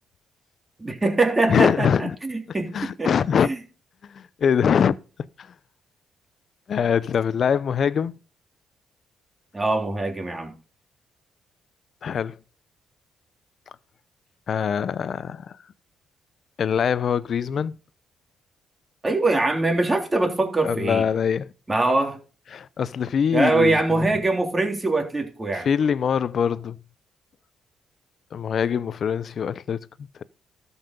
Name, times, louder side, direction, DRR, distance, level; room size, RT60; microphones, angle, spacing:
voice 1, 0.8-3.1 3.4-3.6 9.5-10.5 19.0-21.1 21.7-22.2 23.3-25.7, right 2 dB, 25° right, 3.3 m, -23 dB
voice 2, 1.5-2.2 2.7-3.5 4.0-5.0 5.4-5.5 6.7-8.2 12.0-12.3 14.5-15.6 16.6-17.7 20.6-21.5 22.5-24.0 25.5-26.8 28.3-30.2, left 7 dB, 60° left, 0.6 m, -23 dB
13.0 x 5.5 x 5.3 m
supercardioid pair, 65°, 0 cm